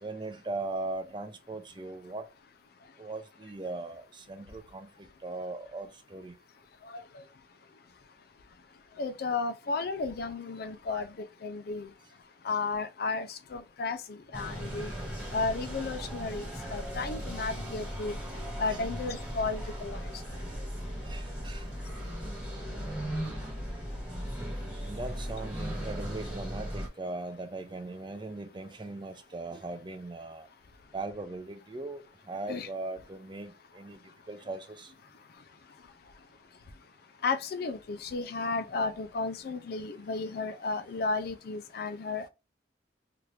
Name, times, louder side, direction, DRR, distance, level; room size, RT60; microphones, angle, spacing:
voice 1, 0.0-2.2 3.0-4.9 5.2-6.3 21.1-21.6 24.9-30.5 30.9-34.0 34.3-34.9, right 2 dB, 25° right, 0.5 m, -39 dB
voice 2, 9.0-11.9 12.4-14.9 15.3-18.2 18.6-20.0 32.5-32.7 37.2-42.3, left 4 dB, 60° left, 0.4 m, -33 dB
sound 1, 14.3-26.9, equal, 5° right, 1.3 m, -37 dB
2.9 x 2.5 x 3.2 m
head